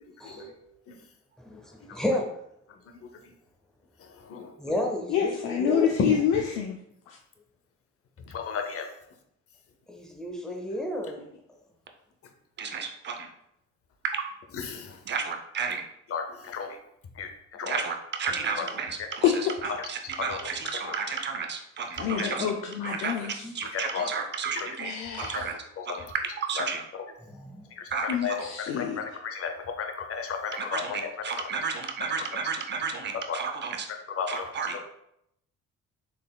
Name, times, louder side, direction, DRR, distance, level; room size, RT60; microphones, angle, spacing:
voice 1, 1.4-2.3 4.6-6.0 9.9-11.3 18.3-18.7 22.0-22.5 22.9-23.0 23.4-23.5 27.2-27.7, left 1 dB, ahead, 1 dB, 0.7 m, -32 dB
voice 2, 5.1-6.8 7.1-7.2 10.5-10.6 19.2-19.3 22.0-23.5 24.8-25.5 28.1-29.0, left 9 dB, 90° left, 0 dB, 0.5 m, -27 dB
voice 3, 8.3-8.9 14.7-14.9 16.1-16.8 17.2-17.3 17.6-17.8 18.6-18.7 20.2-20.4 20.8-20.9 22.2-22.3 23.7-24.1 24.6-24.7 25.9-26.0 28.0-28.4 28.8-31.0 33.3-33.4 34.2-34.4, left 5 dB, 50° left, 5 dB, 0.6 m, -32 dB
voice 4, 12.6-13.3 14.1-14.3 15.1-15.8 17.6-19.3 19.9-22.5 22.8-25.5 25.9-26.9 27.9-28.4 30.5-33.9 34.3-34.8, right 5 dB, 35° right, 4 dB, 0.6 m, -32 dB
3.9 x 3.3 x 2.2 m, 0.76 s
cardioid pair, 90°, 30 cm